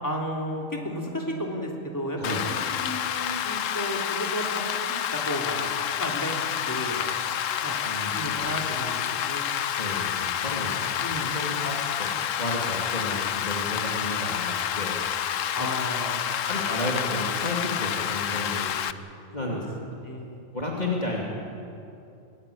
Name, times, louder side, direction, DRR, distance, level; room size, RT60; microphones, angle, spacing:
voice 1, 0.0-5.7 6.0-7.1 7.6-7.8 8.1-9.4 11.0-11.3 15.5-16.4 19.4-20.5, equal, 15° left, -1 dB, 3.2 m, -33 dB
Rain, 2.2-18.9, left 10 dB, 75° left, 1.1 m, -29 dB
voice 2, 7.8-8.4 9.6-10.9 11.3-15.0 15.6-15.7 16.5-18.7 19.3-19.6 20.5-21.2, left 1 dB, 30° left, -3 dB, 2.8 m, -32 dB
20.5 x 20.0 x 8.6 m, 2.6 s
omnidirectional pair, 1.4 m